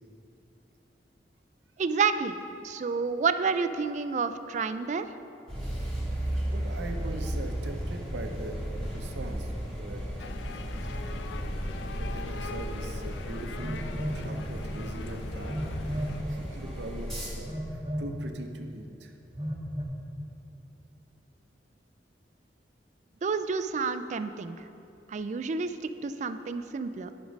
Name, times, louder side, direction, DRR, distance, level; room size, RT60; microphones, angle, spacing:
voice 1, 1.8-2.4 2.6-5.0 23.2-24.6 25.1-27.1, right 5 dB, 40° right, 11 dB, 0.3 m, -29 dB
sound 1, 5.5-17.3, equal, ahead, 2.0 m, -35 dB
voice 2, 6.2-9.5 9.8-10.5 11.0-11.2 12.0-15.6 15.9-19.1, right 2 dB, 75° right, 4 dB, 0.7 m, -41 dB
sound 2, 10.2-16.2, left 4 dB, 80° left, 0.4 m, -43 dB
Telephone, 13.5-14.3 15.5-16.2 17.4-18.1 19.3-19.8, equal, 25° right, 1.0 m, -33 dB
10.0 x 5.2 x 5.2 m, 2.8 s
head